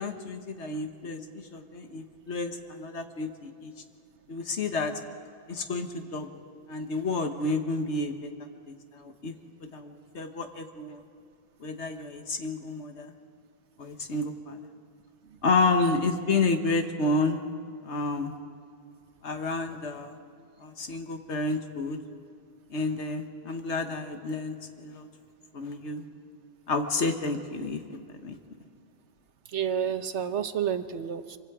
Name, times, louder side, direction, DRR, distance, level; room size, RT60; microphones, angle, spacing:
voice 1, 0.0-3.7 4.3-4.9 5.5-6.3 6.7-8.3 8.7-9.3 9.6-11.1 11.6-13.1 13.8-14.6 15.4-17.4 17.8-18.4 19.2-20.2 20.6-22.0 22.7-25.1 25.5-26.0 26.7-27.8 28.2-28.4, left 3 dB, 70° left, 6 dB, 1.6 m, -30 dB
voice 2, 29.5-31.4, right 8 dB, 75° right, 10 dB, 1.2 m, -30 dB
25.0 x 24.5 x 4.9 m, 2.4 s
omnidirectional pair, 1.2 m